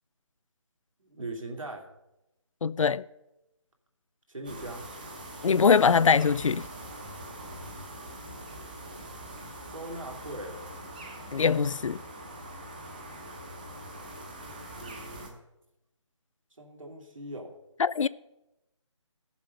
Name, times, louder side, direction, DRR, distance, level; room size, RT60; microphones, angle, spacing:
voice 1, 1.0-1.9 4.3-4.9 8.6-8.7 9.7-10.6 14.8-15.4 16.6-17.5, right 2 dB, 85° right, 2.7 m, -40 dB
voice 2, 2.6-3.0 5.4-6.7 11.3-12.0 17.8-18.1, left 6 dB, 80° left, 0.4 m, -22 dB
sound 1, 4.4-15.3, right 1 dB, 15° right, 0.8 m, -43 dB
14.0 x 7.2 x 5.3 m
figure-of-eight pair, 175°, 16 cm